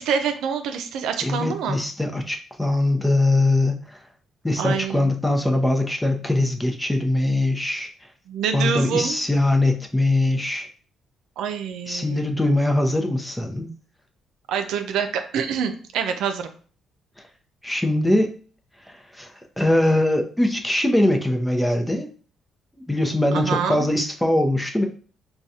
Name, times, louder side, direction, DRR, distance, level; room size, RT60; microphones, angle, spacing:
voice 1, 0.0-1.8 4.6-5.1 8.3-9.2 11.4-12.3 14.5-16.5 23.3-23.8, right 7 dB, 85° right, 7 dB, 0.4 m, -26 dB
voice 2, 1.2-4.0 4.4-7.9 8.5-10.7 11.9-13.7 17.6-18.3 18.9-22.1 22.9-24.8, left 1 dB, 10° left, 3 dB, 0.7 m, -22 dB
4.6 x 2.3 x 2.7 m, 0.42 s
cardioid pair, 90°, 0 cm